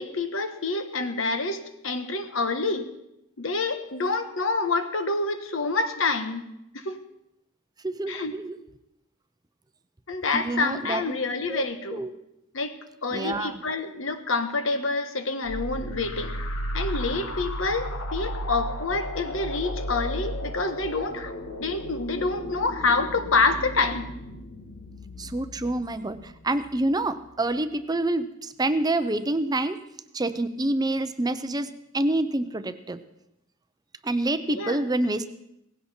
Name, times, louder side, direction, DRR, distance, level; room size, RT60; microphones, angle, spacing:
voice 1, 0.0-2.9 3.4-6.4 6.7-7.0 8.1-8.3 10.1-12.0 12.5-16.4 16.7-21.3 21.6-24.1 34.5-34.8, left 3 dB, 70° left, 8 dB, 1.3 m, -27 dB
voice 2, 7.8-8.6 10.3-11.2 11.5-11.6 11.9-12.1 13.1-13.6 25.2-29.8 30.1-33.0 34.0-35.3, right 2 dB, 20° right, 11 dB, 0.6 m, -27 dB
sound 1, 15.5-26.8, equal, 85° left, 1.8 m, -34 dB
17.5 x 16.0 x 4.4 m, 0.84 s
head